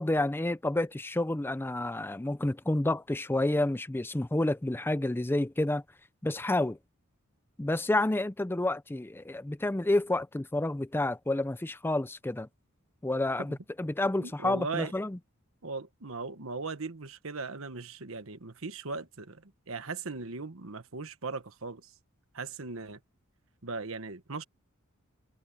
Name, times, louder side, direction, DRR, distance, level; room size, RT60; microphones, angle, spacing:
voice 1, 0.0-5.8 6.2-6.8 7.6-12.5 13.0-15.2, left 1 dB, 10° left, 0.5 m, -29 dB
voice 2, 14.2-14.9 15.6-21.9 22.3-23.0 23.6-24.4, right 4 dB, 70° right, 1.3 m, -38 dB
head